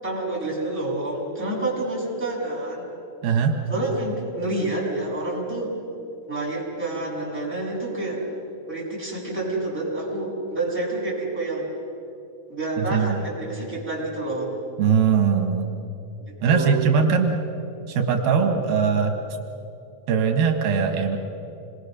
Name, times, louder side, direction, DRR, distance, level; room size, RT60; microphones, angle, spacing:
voice 1, 0.0-2.8 3.7-5.7 6.3-8.2 8.7-11.7 12.5-14.5 16.3-16.8, right 2 dB, 5° right, -7 dB, 7.3 m, -28 dB
voice 2, 3.2-3.6 12.8-13.2 14.8-15.7 16.4-17.4 17.9-19.1 20.1-21.2, right 6 dB, 85° right, 3 dB, 3.4 m, -21 dB
27.5 x 22.0 x 6.8 m, 2.6 s
omnidirectional pair, 4.2 m